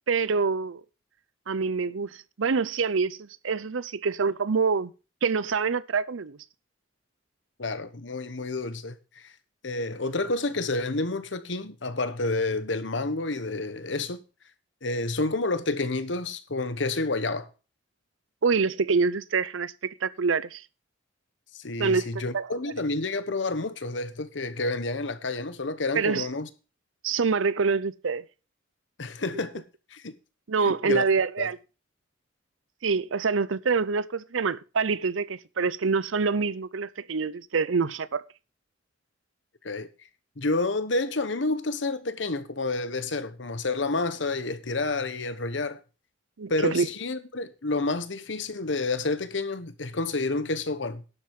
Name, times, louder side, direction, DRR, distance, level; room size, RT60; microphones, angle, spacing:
voice 1, 0.1-0.8 1.5-4.9 5.2-6.4 18.4-20.6 21.8-22.5 26.0-26.3 27.0-28.2 30.5-31.6 32.8-38.2 46.4-46.9, right 5 dB, 85° right, 0.6 m, -26 dB
voice 2, 7.6-9.3 9.6-14.2 14.8-17.5 21.5-26.5 29.0-29.6 29.9-30.2 30.6-31.0 31.4-31.5 39.6-39.9 40.4-45.8 46.5-51.0, left 2 dB, 65° left, 1.2 m, -29 dB
11.5 x 7.7 x 5.4 m
head